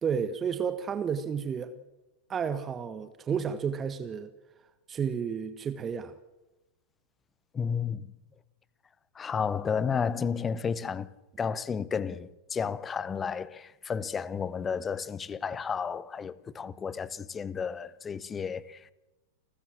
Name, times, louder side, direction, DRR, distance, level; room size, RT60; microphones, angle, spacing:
voice 1, 0.0-1.7 2.3-4.3 4.9-6.1, right 7 dB, 25° right, 1.5 m, -31 dB
voice 2, 7.5-8.1 9.1-11.1 11.4-18.9, left 6 dB, 20° left, 1.0 m, -32 dB
29.5 x 13.5 x 7.6 m
figure-of-eight pair, 90°, 0 cm